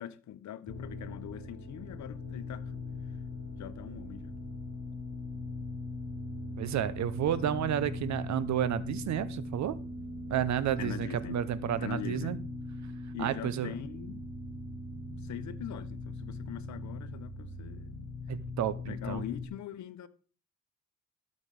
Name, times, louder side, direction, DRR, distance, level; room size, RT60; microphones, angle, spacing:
voice 1, 0.0-2.8 3.6-4.3 10.8-11.4 11.8-12.4 13.1-14.2 15.2-18.1 18.9-20.1, left 11 dB, 70° left, 1.0 m, -42 dB
sound 1, 0.7-19.5, left 2 dB, 20° left, 5.1 m, -40 dB
voice 2, 6.6-9.8 10.3-12.4 13.2-13.7 18.3-19.2, right 10 dB, 70° right, 1.0 m, -31 dB
12.5 x 5.5 x 5.4 m
cardioid pair, 90°, 30 cm